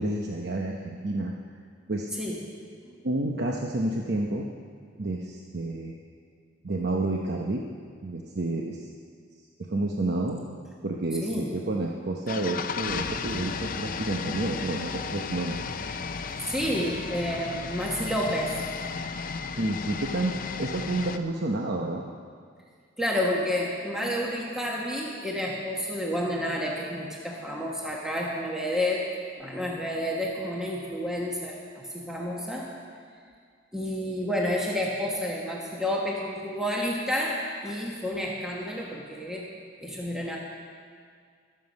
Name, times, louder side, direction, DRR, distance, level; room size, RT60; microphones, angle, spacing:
voice 1, 0.0-1.3 1.9-2.1 3.0-4.5 5.0-5.9 6.6-7.6 8.0-8.9 9.6-10.4 10.8-15.6 19.4-22.0, right 2 dB, 55° right, 0 dB, 0.9 m, -30 dB
voice 2, 2.2-3.0 11.2-11.5 16.5-18.5 23.0-29.1 29.4-32.7 33.7-39.5 39.8-40.4, left 1 dB, 5° right, -3 dB, 1.2 m, -30 dB
sound 1, 12.3-21.2, left 5 dB, 45° left, 0.6 m, -34 dB
22.5 x 7.7 x 5.3 m, 2.1 s
head